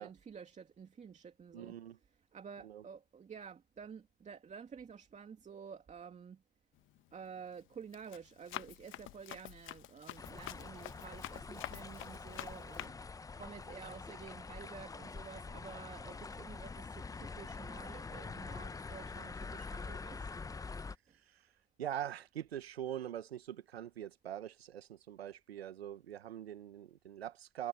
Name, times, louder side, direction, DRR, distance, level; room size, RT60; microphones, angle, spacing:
voice 1, 0.0-1.8 2.3-6.4 7.1-13.0 13.3-20.3 21.1-21.2, right 6 dB, 25° right, 2.7 m, -51 dB
voice 2, 1.5-2.0 2.6-2.8 21.3-21.4 21.8-27.7, right 11 dB, 90° right, 1.2 m, -43 dB
Run, 6.8-7.1 7.6-12.9, left 16 dB, 40° left, 1.1 m, -47 dB
sound 1, 10.2-21.0, left 4 dB, 10° left, 0.8 m, -45 dB
hypercardioid pair, 95°, 30 cm